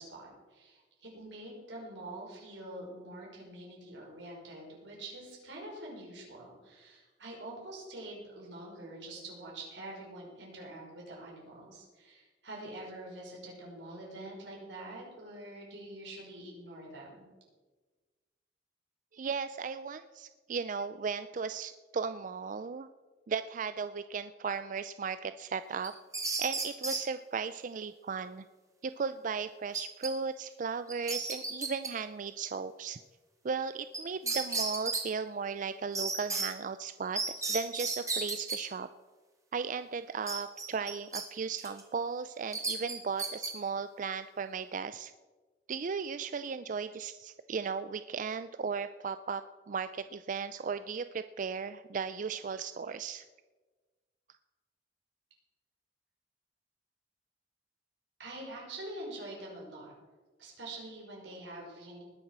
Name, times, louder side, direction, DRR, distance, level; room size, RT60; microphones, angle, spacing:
voice 1, 0.0-17.2 58.2-59.9 60.4-62.0, right 1 dB, 85° right, -3 dB, 5.5 m, -45 dB
voice 2, 19.1-22.9 23.3-25.9 26.4-28.4 28.8-33.0 33.4-38.9 39.5-45.1 45.7-53.2, right 5 dB, 45° right, 12 dB, 0.4 m, -36 dB
sound 1, 25.8-27.0 29.7-30.1 30.4-30.5 30.9-31.9 33.9-34.0 34.3-35.0 35.9-36.5 37.1-38.6 40.3-41.2 41.6-41.8 42.5-43.5, right 3 dB, 20° right, 2.3 m, -33 dB
20.0 x 7.3 x 6.0 m, 1.3 s
head